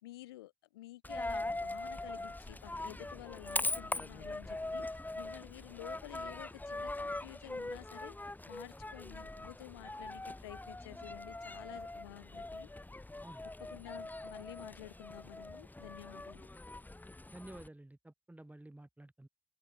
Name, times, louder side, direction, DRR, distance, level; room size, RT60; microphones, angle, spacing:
voice 1, 0.0-12.7 13.6-16.5, left 17 dB, 85° left, 3.5 m, -51 dB
Coin (dropping), 1.0-17.7, left 2 dB, 15° left, 1.5 m, -42 dB
voice 2, 17.3-19.3, right 1 dB, 10° right, 4.6 m, -52 dB
open air
hypercardioid pair, 45°, 12 cm